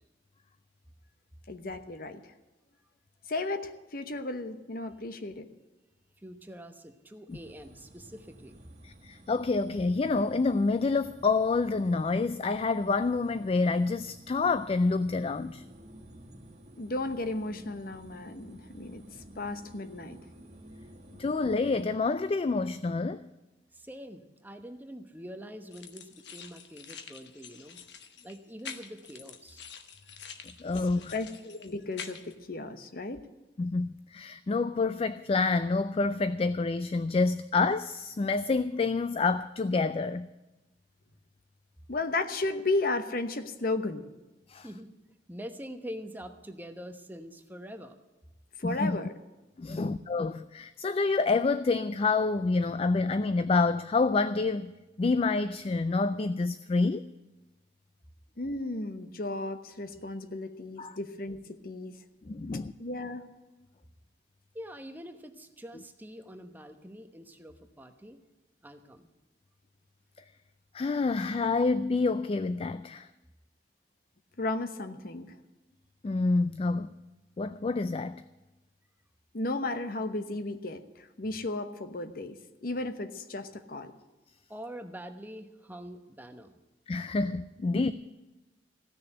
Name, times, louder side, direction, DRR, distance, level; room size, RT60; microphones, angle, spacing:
voice 1, 1.5-2.2 3.3-5.5 16.8-19.0 19.4-20.2 31.1-33.2 41.9-44.0 48.6-49.1 58.4-62.0 62.8-63.2 74.4-75.3 79.3-83.9 87.7-87.8, left 2 dB, 55° left, 1.0 m, -34 dB
voice 2, 6.2-8.6 23.7-27.8 28.2-29.7 44.6-44.9 45.3-48.0 49.7-49.9 64.5-68.2 68.6-69.1 84.5-86.6, equal, 10° right, 1.0 m, -45 dB
sound 1, 7.3-21.8, right 1 dB, 40° right, 1.3 m, -53 dB
voice 3, 8.8-15.6 21.2-23.2 30.6-31.1 33.6-40.3 44.5-44.6 48.6-49.0 49.6-57.1 60.8-61.0 62.3-62.7 70.7-73.1 76.0-76.9 77.4-78.2 86.9-87.9, left 3 dB, 35° left, 0.4 m, -28 dB
sound 2, 25.7-32.3, left 6 dB, 85° left, 1.1 m, -47 dB
15.5 x 6.7 x 9.9 m
head